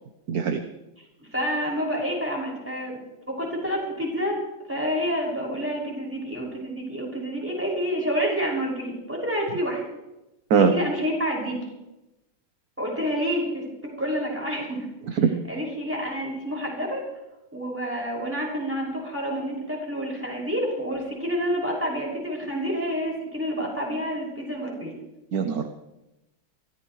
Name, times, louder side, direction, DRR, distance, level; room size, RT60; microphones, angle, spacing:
voice 1, 0.3-0.6 10.5-10.7 15.2-15.3 25.3-25.7, right 6 dB, 55° right, 6 dB, 1.3 m, -20 dB
voice 2, 1.2-3.0 3.3-4.4 4.7-9.8 10.6-11.6 12.8-13.7 14.0-14.9 15.2-17.0 17.5-24.9, equal, 5° right, -3 dB, 6.1 m, -28 dB
23.5 x 15.5 x 3.2 m, 0.97 s
omnidirectional pair, 2.1 m